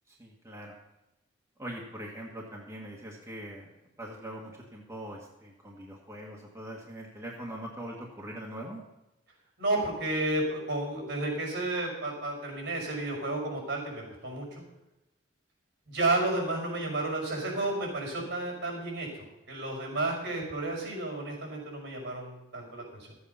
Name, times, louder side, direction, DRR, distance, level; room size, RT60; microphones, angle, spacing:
voice 1, 0.1-0.8 1.6-3.7 4.0-8.8, right 1 dB, 15° right, -3 dB, 1.4 m, -42 dB
voice 2, 9.6-14.6 15.9-23.1, right 2 dB, 70° right, -1 dB, 5.7 m, -32 dB
13.5 x 8.1 x 5.5 m, 0.96 s
head